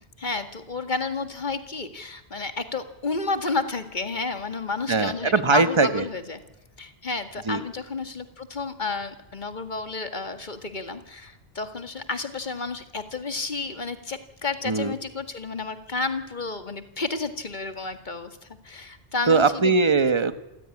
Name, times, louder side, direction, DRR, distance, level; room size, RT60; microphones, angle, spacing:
voice 1, 0.2-6.4 6.8-19.8, left 3 dB, 45° left, 8 dB, 2.1 m, -31 dB
voice 2, 4.9-6.0 7.5-7.6 14.6-14.9 19.3-20.4, right 4 dB, 30° right, 11 dB, 1.3 m, -21 dB
27.5 x 15.5 x 9.8 m, 0.98 s
omnidirectional pair, 1.1 m